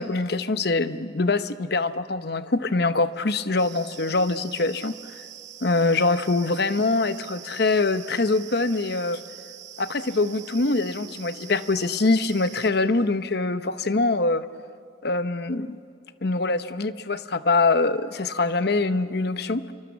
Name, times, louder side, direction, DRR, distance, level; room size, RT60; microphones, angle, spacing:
voice 1, 0.0-5.0 5.6-9.2 9.8-14.5 15.0-15.8 16.2-19.7, left 3 dB, 55° left, 12 dB, 0.9 m, -24 dB
sound 1, 3.6-12.7, right 10 dB, 70° right, 2.1 m, -44 dB
28.0 x 24.0 x 7.3 m, 2.6 s
head